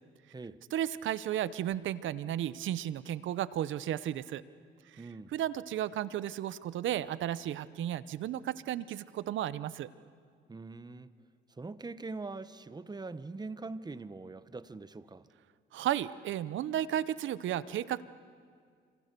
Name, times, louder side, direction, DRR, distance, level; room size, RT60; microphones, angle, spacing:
voice 1, 0.7-4.4 4.9-5.0 5.3-9.9 15.7-18.0, right 11 dB, 75° right, 17 dB, 0.8 m, -34 dB
voice 2, 5.0-5.3 10.5-11.1 11.6-15.3, right 3 dB, 20° right, 14 dB, 1.0 m, -42 dB
27.5 x 26.0 x 6.8 m, 2.1 s
cardioid pair, 90°, 20 cm